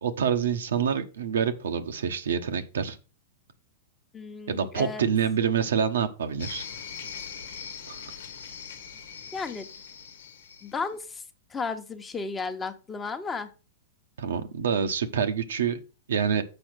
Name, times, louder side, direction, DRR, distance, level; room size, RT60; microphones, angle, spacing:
voice 1, 0.0-3.0 4.5-6.6 7.9-8.0 14.2-15.8 16.1-16.4, right 7 dB, 85° right, 7 dB, 1.0 m, -27 dB
voice 2, 4.1-5.1 9.3-9.7 10.6-11.2 11.5-13.5, left 4 dB, 15° left, 7 dB, 1.0 m, -34 dB
sound 1, 6.4-10.9, left 6 dB, 80° left, 1.2 m, -41 dB
7.0 x 4.9 x 6.2 m, 0.33 s
hypercardioid pair, 125°, 0 cm